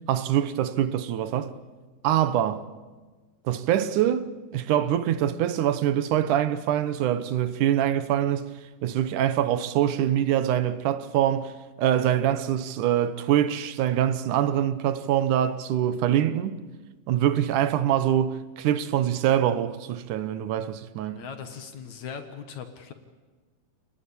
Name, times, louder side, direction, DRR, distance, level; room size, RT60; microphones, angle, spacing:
voice 1, 0.1-1.5 2.0-2.7 3.5-8.4 8.8-11.5 11.8-16.6 17.1-21.2, right 11 dB, 70° right, 2.3 m, -24 dB
voice 2, 21.2-22.9, left 7 dB, 60° left, 2.6 m, -39 dB
28.5 x 19.5 x 8.6 m
omnidirectional pair, 4.1 m